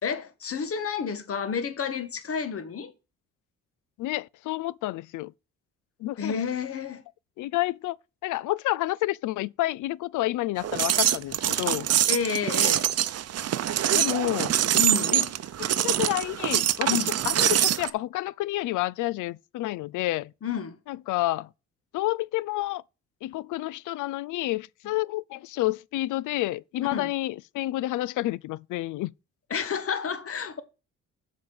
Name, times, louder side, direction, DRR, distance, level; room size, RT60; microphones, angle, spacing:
voice 1, 0.0-2.9 6.2-7.0 12.1-12.8 14.7-15.2 16.9-17.1 20.4-20.8 26.9-27.1 29.5-30.6, left 6 dB, 50° left, 1.5 m, -30 dB
voice 2, 4.0-5.3 6.0-6.4 7.4-8.0 8.2-11.9 13.9-14.5 15.1-15.3 15.6-20.3 20.9-21.5 21.9-22.8 23.2-29.1, left 17 dB, 80° left, 0.5 m, -29 dB
sound 1, 10.6-17.9, right 11 dB, 55° right, 0.7 m, -24 dB
7.6 x 5.2 x 7.1 m
cardioid pair, 90°, 30 cm